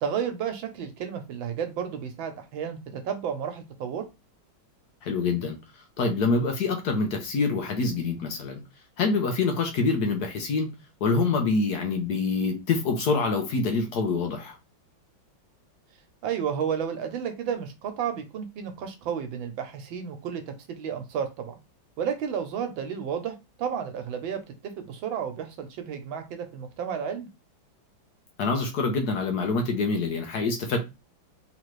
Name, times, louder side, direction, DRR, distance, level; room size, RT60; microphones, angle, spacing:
voice 1, 0.0-4.1 16.2-21.6 22.0-27.3, right 7 dB, 85° right, 1.6 m, -32 dB
voice 2, 5.0-5.6 6.0-8.6 9.0-10.7 11.0-14.6 28.4-30.8, left 4 dB, 60° left, 1.3 m, -26 dB
3.7 x 3.2 x 3.1 m
omnidirectional pair, 2.1 m